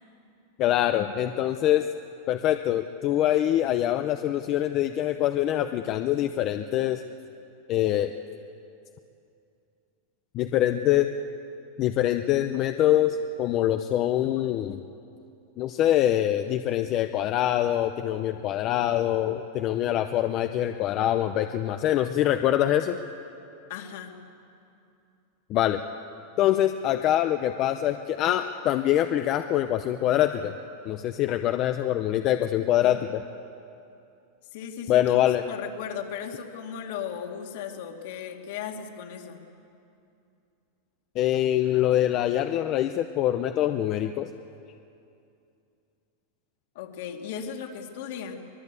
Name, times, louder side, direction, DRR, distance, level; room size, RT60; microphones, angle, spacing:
voice 1, 0.6-1.9 2.3-7.0 7.7-8.1 10.3-11.1 11.8-14.8 15.6-23.0 25.5-25.8 26.4-30.5 30.8-33.2 34.9-35.4 41.1-44.3, left 12 dB, 30° left, 8 dB, 0.6 m, -24 dB
voice 2, 23.7-24.2 32.8-33.0 34.5-39.4 46.7-48.3, left 8 dB, 60° left, 3 dB, 2.4 m, -36 dB
24.0 x 20.5 x 8.3 m, 2.6 s
supercardioid pair, 165°, 0 cm